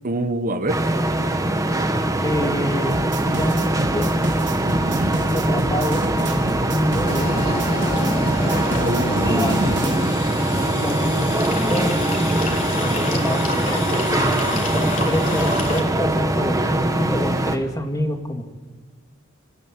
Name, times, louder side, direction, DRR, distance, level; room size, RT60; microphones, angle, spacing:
voice 1, 0.0-0.8 4.7-5.1 8.8-10.1, right 1 dB, 45° right, 9 dB, 1.1 m, -26 dB
sound 1, 0.7-17.6, right 1 dB, 15° right, 1.4 m, -22 dB
voice 2, 2.2-4.1 5.0-10.0 10.3-11.3 11.7-12.0 12.8-18.4, equal, 20° left, 4 dB, 2.3 m, -27 dB
sound 2, 2.9-10.0, right 1 dB, 60° right, 3.6 m, -30 dB
sound 3, 7.0-15.8, left 1 dB, 40° left, 3.8 m, -29 dB
26.5 x 13.0 x 9.8 m, 1.5 s
head